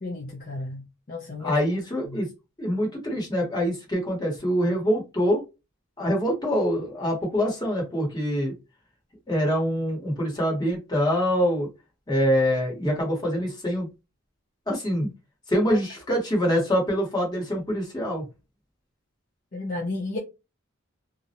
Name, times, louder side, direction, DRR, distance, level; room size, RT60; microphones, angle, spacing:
voice 1, 0.0-1.6 2.1-2.2 15.7-15.8 19.5-20.2, left 2 dB, 45° left, 0.5 m, -33 dB
voice 2, 1.4-2.3 2.6-5.4 6.0-8.5 9.3-11.7 12.1-13.9 14.7-15.1 15.5-18.2, equal, 20° left, 1.1 m, -25 dB
2.4 x 2.0 x 2.8 m
head